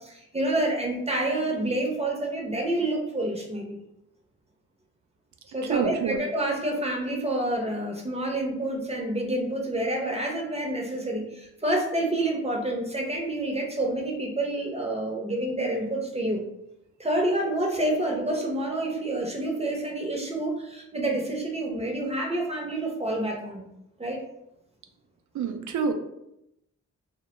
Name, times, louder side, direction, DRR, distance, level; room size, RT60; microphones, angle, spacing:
voice 1, 0.0-3.8 5.5-16.4 17.0-23.6 24.0-24.2, right 1 dB, 20° right, 0 dB, 0.7 m, -28 dB
voice 2, 5.6-6.2 25.3-25.9, right 6 dB, 60° right, 5 dB, 0.5 m, -27 dB
2.1 x 2.1 x 2.9 m, 0.82 s
supercardioid pair, 45°, 33 cm